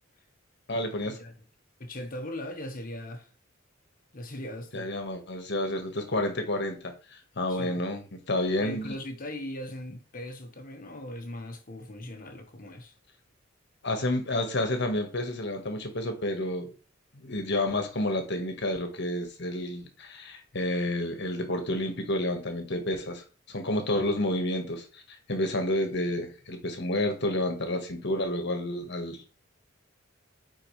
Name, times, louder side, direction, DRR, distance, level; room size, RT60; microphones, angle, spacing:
voice 1, 0.7-1.2 4.7-8.9 13.8-16.7 17.2-25.0 25.3-29.3, left 1 dB, 60° left, 1.5 m, -30 dB
voice 2, 1.8-3.3 4.1-4.9 7.5-7.8 8.6-12.9, left 1 dB, 45° left, 1.3 m, -39 dB
8.5 x 4.5 x 3.2 m
head